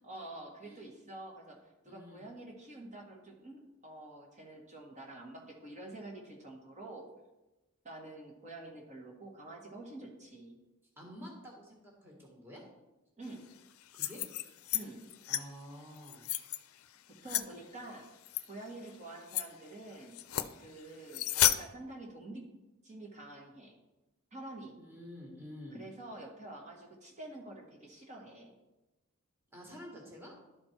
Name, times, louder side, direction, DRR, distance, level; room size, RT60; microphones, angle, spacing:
voice 1, 0.0-7.0 7.8-10.6 13.2-13.4 14.7-15.0 17.1-18.1 18.5-20.2 20.6-22.5 22.8-23.8 24.3-24.8 25.7-28.6, right 2 dB, 35° right, -1 dB, 1.7 m, -48 dB
voice 2, 1.8-2.2 11.0-12.6 13.9-14.2 15.3-16.2 24.8-25.8 29.5-30.3, equal, 10° right, -2 dB, 1.7 m, -49 dB
sound 1, 13.8-14.8 15.1-15.4 16.0-16.6 17.3-17.4 18.3-18.4 18.9-19.0 19.3-19.4 20.1-20.5 21.1-21.6, left 13 dB, 85° left, 0.4 m, -31 dB
12.0 x 4.3 x 4.5 m, 1.0 s
head